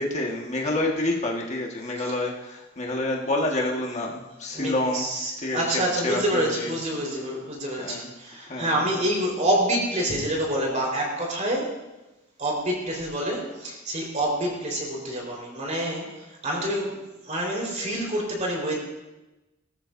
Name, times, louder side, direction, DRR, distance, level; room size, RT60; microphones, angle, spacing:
voice 1, 0.0-5.1 5.4-6.7 7.7-8.1 8.5-8.8, left 2 dB, 35° left, -1 dB, 1.6 m, -28 dB
voice 2, 4.5-11.8 12.4-17.0 17.2-18.8, right 1 dB, 40° right, -1 dB, 4.4 m, -27 dB
20.0 x 13.5 x 2.7 m, 1.0 s
head